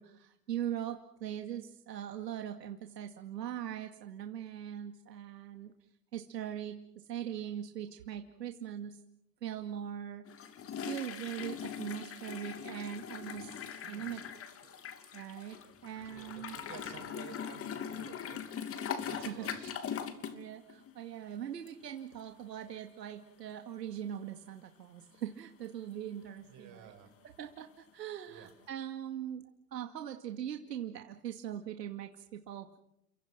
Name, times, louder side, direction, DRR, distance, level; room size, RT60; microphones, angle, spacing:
voice 1, 0.0-5.7 6.1-9.0 9.4-10.6 10.9-14.2 15.1-16.6 19.1-19.5 20.3-26.9 27.2-29.4 29.7-32.8, right 10 dB, 80° right, 5 dB, 2.3 m, -41 dB
sound 1, 10.3-20.4 20.7-21.0 21.7-21.8 22.1-22.2 28.5-28.6, left 8 dB, 25° left, 2.8 m, -41 dB
voice 2, 13.8-14.2 14.6-14.8 16.0-18.6 19.0-19.7 21.1-21.4 26.4-27.1 28.3-28.5, right 9 dB, 40° right, 4 dB, 7.2 m, -53 dB
30.0 x 25.0 x 6.1 m, 0.77 s
hypercardioid pair, 110°, 49 cm